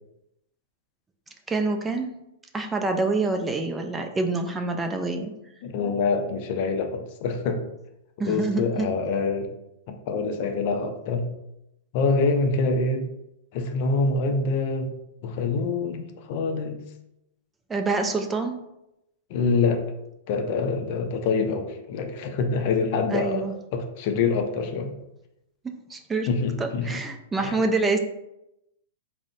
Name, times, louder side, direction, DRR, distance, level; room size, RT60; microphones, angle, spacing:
voice 1, 1.5-2.1 2.5-5.3 8.2-8.9 17.7-18.6 23.1-23.5 25.9-26.3 26.6-28.0, right 3 dB, 15° right, 5 dB, 0.3 m, -26 dB
voice 2, 5.6-7.6 8.2-9.5 9.9-11.3 11.9-13.1 13.5-14.9 15.2-16.8 19.3-19.8 20.3-23.4 23.7-24.9 26.3-27.0 27.4-27.6, left 4 dB, 50° left, 5 dB, 0.4 m, -25 dB
3.7 x 2.0 x 2.6 m, 0.86 s
hypercardioid pair, 120°, 0 cm